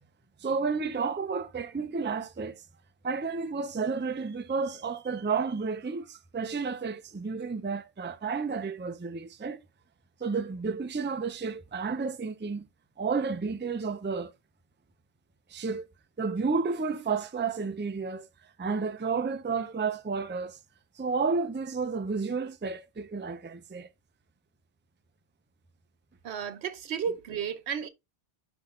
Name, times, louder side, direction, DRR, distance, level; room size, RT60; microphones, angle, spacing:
voice 1, 0.4-2.6 3.0-9.6 10.2-12.7 13.0-14.3 15.5-15.8 16.2-20.6 21.0-23.9, right 4 dB, 15° right, 0.4 m, -31 dB
voice 2, 26.2-27.9, right 7 dB, 90° right, 1.1 m, -33 dB
6.1 x 5.3 x 3.7 m
omnidirectional pair, 1.1 m